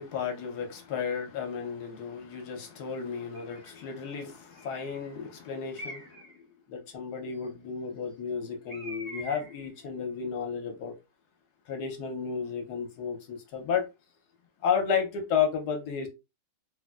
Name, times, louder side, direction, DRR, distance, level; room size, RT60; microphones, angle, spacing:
voice 1, 0.0-6.4 6.7-10.9 11.7-13.9 14.6-16.1, left 6 dB, 65° left, 1.1 m, -32 dB
Bird, 3.3-3.8 4.6-5.1 5.7-6.4 8.7-9.7, right 1 dB, 45° right, 0.5 m, -44 dB
3.2 x 2.6 x 2.3 m
omnidirectional pair, 2.1 m